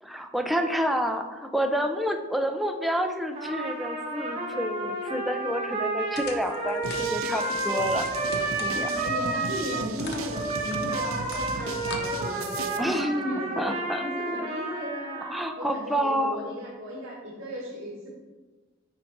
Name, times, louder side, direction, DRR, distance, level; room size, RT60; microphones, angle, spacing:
voice 1, 0.0-8.1 8.6-8.9 12.8-14.1 15.2-16.4, equal, ahead, 5 dB, 0.5 m, -29 dB
Trumpet, 3.4-9.8 10.3-15.6, right 2 dB, 30° right, 1.2 m, -31 dB
sound 1, 6.2-9.2 9.5-12.7, left 3 dB, 50° left, 0.8 m, -41 dB
sound 2, 6.8-12.8, right 5 dB, 80° right, 0.6 m, -37 dB
voice 2, 8.6-13.7 14.0-15.3 15.6-18.1, equal, 65° right, -5 dB, 1.8 m, -36 dB
9.5 x 3.9 x 4.6 m, 1.3 s
head